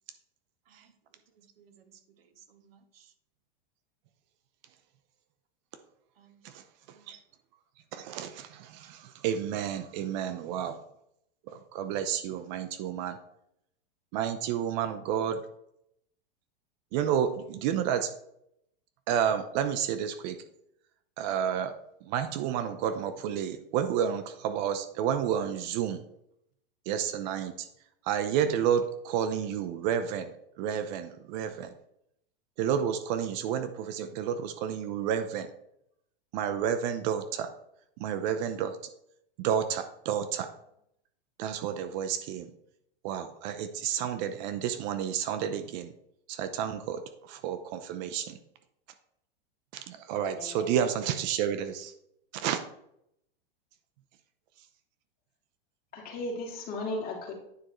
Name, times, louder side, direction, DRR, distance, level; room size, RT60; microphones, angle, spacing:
voice 1, 1.4-3.1 6.2-6.4 6.9-7.1, right 8 dB, 85° right, 9 dB, 1.2 m, -60 dB
voice 2, 7.9-10.8 11.5-13.2 14.1-15.4 16.9-18.1 19.1-20.4 21.2-21.7 22.0-26.0 26.9-27.7 28.0-30.3 30.6-31.7 32.6-35.5 36.3-37.5 38.0-38.8 39.4-40.5 41.4-42.5 43.0-45.9 46.3-48.4 49.7-51.9 52.3-52.6, right 9 dB, 50° right, 9 dB, 0.8 m, -30 dB
voice 3, 50.4-50.8 55.9-57.3, left 2 dB, 30° left, -1 dB, 2.8 m, -36 dB
9.4 x 6.2 x 3.2 m, 0.76 s
hypercardioid pair, 130°, 29 cm